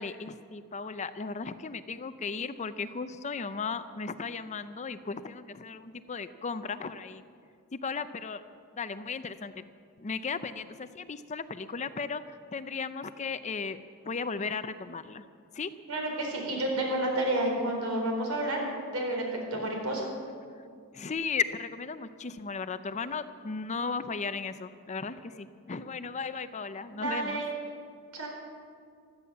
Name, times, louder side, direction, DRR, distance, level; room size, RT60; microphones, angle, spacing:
voice 1, 0.0-7.2 7.7-8.4 8.7-9.6 10.0-12.2 12.5-15.2 15.5-15.7 19.5-19.8 20.9-27.4, left 5 dB, 35° left, 12 dB, 0.5 m, -36 dB
voice 2, 15.9-18.6 18.9-19.2 19.5-20.1 27.0-27.5 28.1-28.3, right 1 dB, 75° right, 0 dB, 4.3 m, -30 dB
16.0 x 13.0 x 7.0 m, 2.2 s
head